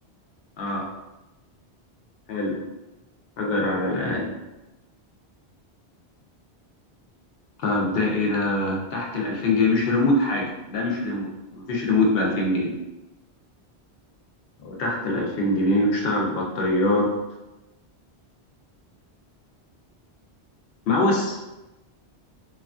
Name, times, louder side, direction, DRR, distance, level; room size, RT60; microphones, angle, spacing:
voice 1, 3.4-4.3 7.6-12.7 14.6-17.1 20.9-21.4, left 2 dB, 65° left, -2 dB, 0.8 m, -23 dB
3.0 x 2.4 x 2.3 m, 1.0 s
omnidirectional pair, 1.1 m